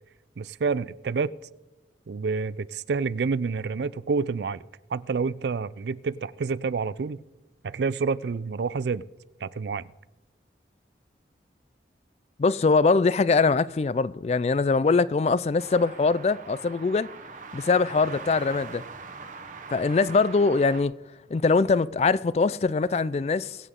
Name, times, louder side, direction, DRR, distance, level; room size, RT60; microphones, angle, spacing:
voice 1, 0.4-1.3 2.1-4.6 4.9-7.2 7.6-9.0 9.4-9.9, right 4 dB, 75° right, 0.4 m, -28 dB
voice 2, 12.4-17.1 17.5-18.8 19.7-20.9 21.3-23.6, left 4 dB, 35° left, 0.3 m, -22 dB
sound 1, 15.6-20.8, right 4 dB, 45° right, 0.9 m, -42 dB
23.0 x 8.2 x 3.7 m
head